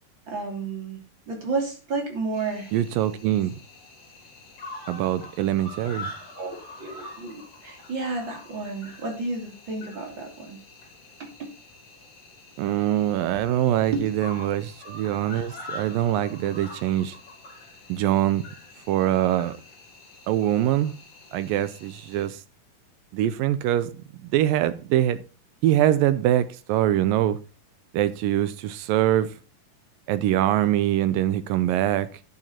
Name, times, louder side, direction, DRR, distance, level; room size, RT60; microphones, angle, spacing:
voice 1, 0.3-1.0 1.3-2.7 6.4-10.6 11.2-11.5 13.9-14.0, right 3 dB, 35° right, 3.2 m, -31 dB
Cricket, 2.3-22.3, left 2 dB, 40° left, 4.3 m, -45 dB
voice 2, 2.7-3.5 4.9-6.1 12.6-17.2 17.9-18.4 18.9-19.6 20.3-20.9 21.3-22.4 23.1-23.9 24.2-25.2 25.6-27.4 27.9-29.3 30.1-32.1, right 12 dB, 80° right, 2.2 m, -23 dB
10.5 x 9.1 x 4.3 m
omnidirectional pair, 4.4 m